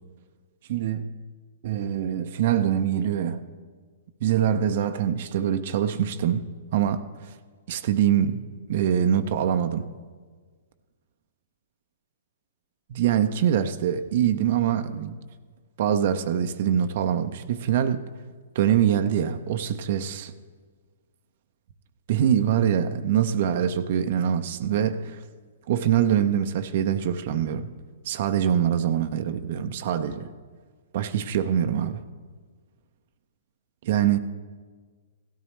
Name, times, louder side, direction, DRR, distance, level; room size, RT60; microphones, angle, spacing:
voice 1, 0.7-1.1 1.6-3.4 4.2-7.3 7.7-8.4 8.7-9.9 12.9-15.1 15.8-18.0 18.5-20.3 22.1-25.2 25.7-27.7 28.1-30.3 30.9-32.0 33.8-34.2, right 9 dB, 50° right, 9 dB, 0.6 m, -24 dB
16.5 x 13.0 x 3.1 m, 1.5 s
figure-of-eight pair, 115°, 0 cm